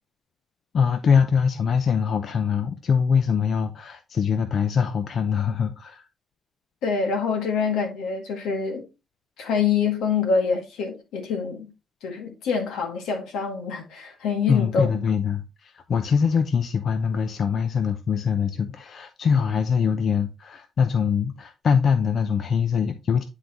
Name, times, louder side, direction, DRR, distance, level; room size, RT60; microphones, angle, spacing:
voice 1, 0.7-6.1 14.5-23.2, left 6 dB, 55° left, 0.7 m, -23 dB
voice 2, 6.8-8.8 9.4-11.7 12.0-15.0, left 5 dB, 85° left, 1.9 m, -25 dB
10.0 x 3.9 x 3.0 m
cardioid pair, 90°, 0 cm